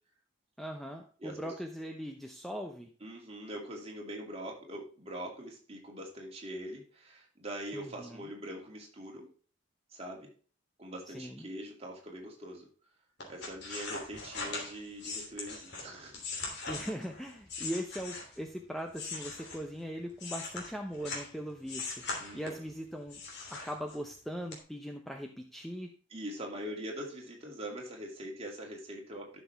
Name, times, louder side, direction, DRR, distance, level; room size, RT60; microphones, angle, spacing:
voice 1, 0.6-2.9 7.7-8.2 11.1-11.4 16.7-22.1 22.3-23.2 23.5-25.9, equal, ahead, 3 dB, 0.6 m, -40 dB
voice 2, 1.2-1.5 3.0-9.3 9.9-10.3 10.8-12.7 13.2-16.2 16.8-16.9 22.2-22.7 26.1-29.4, right 1 dB, 30° right, -1 dB, 2.5 m, -43 dB
sound 1, 13.2-18.5 18.9-21.3 21.7-22.7 23.1-24.1 24.5-24.6, left 3 dB, 50° left, 3.0 m, -40 dB
12.0 x 6.3 x 3.4 m, 0.41 s
head